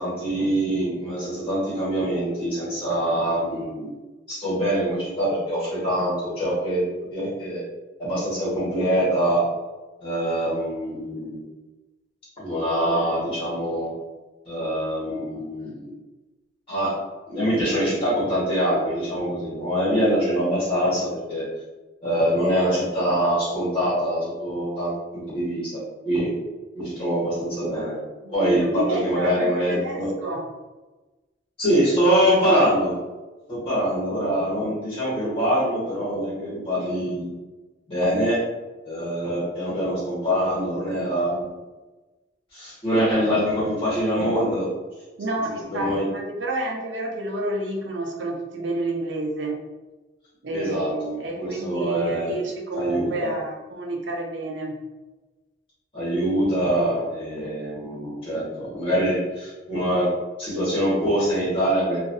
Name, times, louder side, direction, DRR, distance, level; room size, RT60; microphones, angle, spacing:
voice 1, 0.0-3.9 4.3-6.8 7.1-7.6 8.0-9.4 10.0-11.4 12.4-13.9 14.4-15.9 16.7-16.9 17.3-21.4 22.0-24.9 25.3-25.7 26.0-26.3 26.7-28.0 28.3-30.1 31.6-33.0 33.5-37.3 37.9-38.4 38.8-41.5 42.5-44.7 45.7-46.0 50.5-51.1 51.4-52.3 52.7-53.3 55.9-60.1 60.4-62.0, equal, 30° left, -9 dB, 1.4 m, -24 dB
voice 2, 28.2-30.4 45.2-49.6 50.4-54.8, right 2 dB, 85° right, 0 dB, 0.6 m, -30 dB
3.0 x 2.5 x 2.6 m, 1.2 s
head